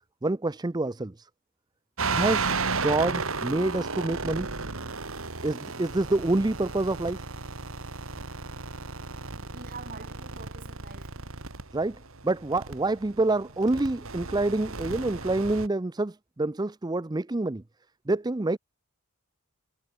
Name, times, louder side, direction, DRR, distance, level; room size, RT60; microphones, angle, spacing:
voice 1, 0.2-1.3 2.1-4.5 5.4-7.2 11.7-17.6 18.1-18.6, right 2 dB, 20° right, 0.5 m, -27 dB
sound 1, 2.0-15.7, right 4 dB, 65° right, 2.3 m, -34 dB
voice 2, 9.4-11.1, right 4 dB, 40° right, 4.0 m, -45 dB
head